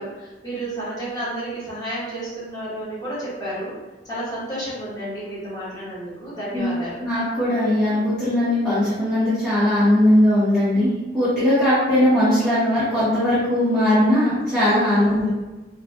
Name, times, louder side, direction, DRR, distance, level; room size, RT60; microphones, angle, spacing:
voice 1, 0.0-3.7 4.0-7.0 14.9-15.2, right 1 dB, 20° left, -10 dB, 1.3 m, -31 dB
voice 2, 7.0-15.3, left 1 dB, 5° left, -15 dB, 1.0 m, -19 dB
3.7 x 2.4 x 2.3 m, 1.2 s
head